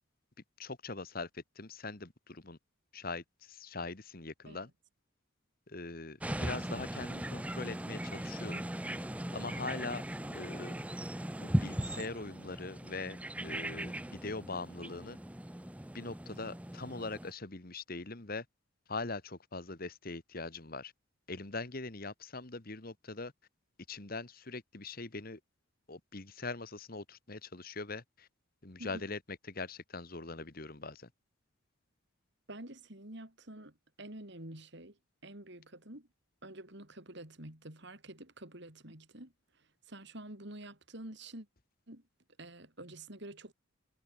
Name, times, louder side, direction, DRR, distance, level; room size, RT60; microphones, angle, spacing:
voice 1, 0.6-2.6 2.9-4.7 5.7-8.7 9.3-10.7 11.4-15.2 15.9-18.4 18.9-20.9 21.3-23.3 23.9-25.4 25.9-28.3 28.6-31.1, left 3 dB, 45° left, 1.5 m, -42 dB
sound 1, 6.2-17.3, right 1 dB, 5° right, 0.7 m, -38 dB
voice 2, 28.8-29.1 32.5-36.1 36.4-41.5 41.9-42.0 42.4-43.5, right 1 dB, 55° right, 3.7 m, -48 dB
head